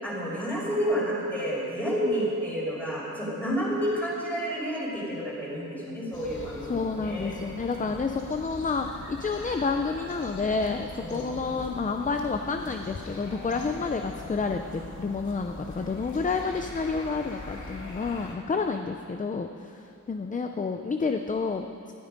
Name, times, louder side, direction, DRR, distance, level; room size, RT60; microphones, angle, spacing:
voice 1, 0.0-7.3 11.0-11.3, equal, 5° left, -6 dB, 5.1 m, -30 dB
sound 1, 6.1-18.4, left 2 dB, 70° left, 2.4 m, -42 dB
voice 2, 6.7-21.9, left 4 dB, 25° left, 5 dB, 0.5 m, -30 dB
19.5 x 14.0 x 5.3 m, 2.7 s
wide cardioid pair, 175°, 31 cm